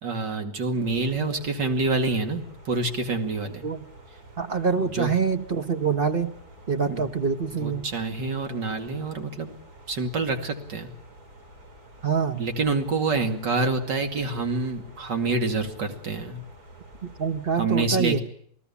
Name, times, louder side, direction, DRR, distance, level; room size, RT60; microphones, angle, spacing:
voice 1, 0.0-3.6 4.8-5.1 6.9-7.0 7.5-9.5 9.9-10.9 12.4-16.4 17.6-18.2, right 3 dB, 80° right, 5 dB, 3.0 m, -27 dB
sound 1, 0.8-17.6, right 1 dB, 55° right, 4.3 m, -49 dB
voice 2, 4.4-6.3 6.7-7.8 12.0-12.5 17.0-18.2, right 5 dB, 40° right, 9 dB, 1.0 m, -25 dB
28.5 x 18.5 x 7.1 m, 0.67 s
omnidirectional pair, 1.9 m